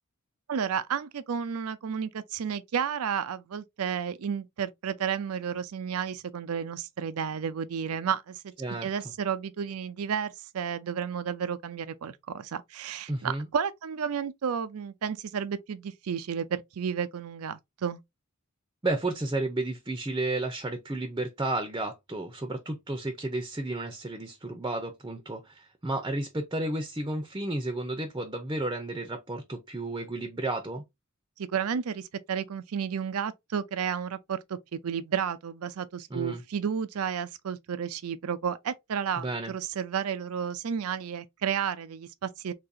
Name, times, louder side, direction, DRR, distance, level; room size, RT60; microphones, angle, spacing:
voice 1, 0.5-8.5 8.8-18.0 31.4-42.5, right 7 dB, 85° right, 0.5 m, -32 dB
voice 2, 13.1-13.5 18.8-30.8 36.1-36.4 39.2-39.5, right 2 dB, 20° right, 0.6 m, -32 dB
3.9 x 2.8 x 2.7 m
head